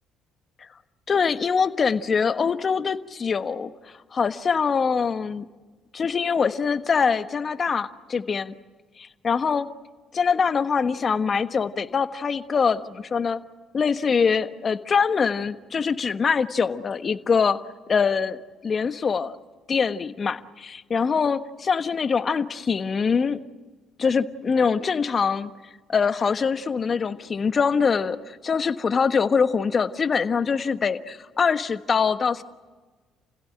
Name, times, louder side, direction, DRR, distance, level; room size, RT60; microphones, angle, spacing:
voice 1, 1.1-3.7 4.1-5.5 5.9-8.5 9.0-9.7 10.1-13.4 13.7-17.6 17.9-19.4 19.7-23.4 24.0-25.5 25.9-32.4, left 5 dB, 40° left, 11 dB, 1.3 m, -23 dB
30.0 x 16.5 x 9.9 m, 1.3 s
hypercardioid pair, 60°, 0 cm